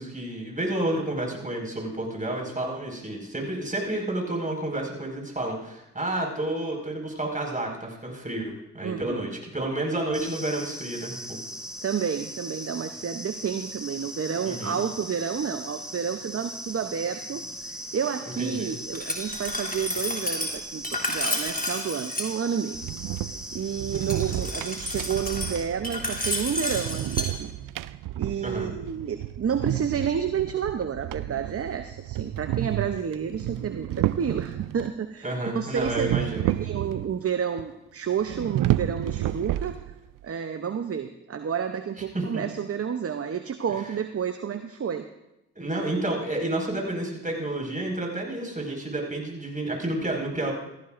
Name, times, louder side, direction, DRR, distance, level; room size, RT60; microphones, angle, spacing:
voice 1, 0.0-11.4 14.5-14.8 18.4-18.7 28.4-28.7 35.2-36.4 42.1-42.4 45.6-50.5, right 1 dB, 20° right, 0 dB, 5.3 m, -30 dB
voice 2, 8.8-9.3 11.8-22.8 23.5-27.5 28.1-39.9 40.2-45.0, right 7 dB, 40° right, 8 dB, 0.8 m, -30 dB
sound 1, 10.1-25.6, equal, ahead, 3.9 m, -39 dB
Glass, 18.9-22.3 23.9-27.3, left 1 dB, 25° left, 3.1 m, -31 dB
sound 2, 22.7-34.9 35.8-37.3 37.6-37.7 38.2-40.2, right 14 dB, 65° right, 0.5 m, -31 dB
17.0 x 14.5 x 2.6 m, 0.89 s
hypercardioid pair, 45°, 36 cm